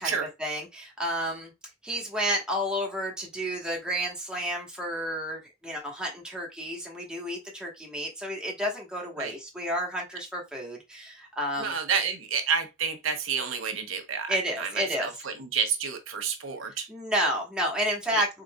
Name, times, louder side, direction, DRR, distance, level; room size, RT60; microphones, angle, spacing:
voice 1, 0.0-1.5 1.8-11.7 14.3-15.1 16.7-18.3, equal, 5° right, 1.1 m, -31 dB
voice 2, 11.6-16.9 18.1-18.2, right 6 dB, 90° right, 0.8 m, -30 dB
4.0 x 3.8 x 2.2 m
head